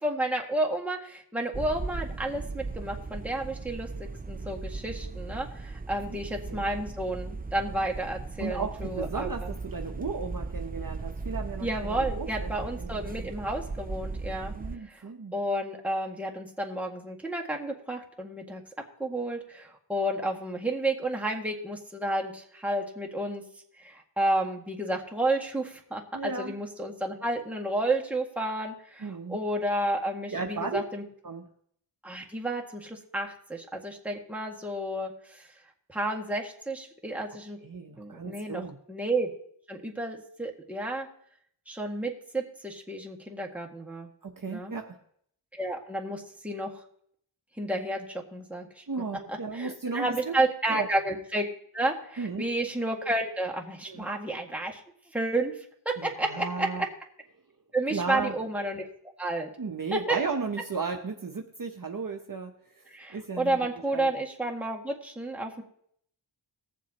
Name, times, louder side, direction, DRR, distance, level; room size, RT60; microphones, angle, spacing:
voice 1, 0.0-9.5 11.6-14.5 14.9-15.0 15.3-18.6 19.0-23.4 23.8-31.0 32.0-35.5 35.9-37.6 38.0-38.6 38.9-39.3 39.7-41.1 41.7-44.1 44.5-44.7 45.6-46.7 47.6-48.1 48.3-48.8 49.3-51.5 51.7-54.8 55.1-55.5 55.9-56.7 57.7-58.9 59.2-59.5 60.1-60.2 62.9-65.6, right 1 dB, 5° right, -1 dB, 1.8 m, -31 dB
sound 1, 1.5-14.8, right 3 dB, 20° right, 0.5 m, -37 dB
voice 2, 8.4-13.3 14.5-15.3 26.1-26.5 29.0-29.4 30.3-30.8 31.2-31.4 37.6-38.8 44.2-45.0 48.9-50.4 50.7-50.9 52.2-52.5 53.9-54.1 56.0-56.8 57.9-58.3 59.6-62.8 63.1-63.7 63.9-64.1, right 4 dB, 40° right, 3 dB, 0.9 m, -35 dB
19.5 x 7.3 x 2.9 m, 0.67 s
wide cardioid pair, 45°, 49 cm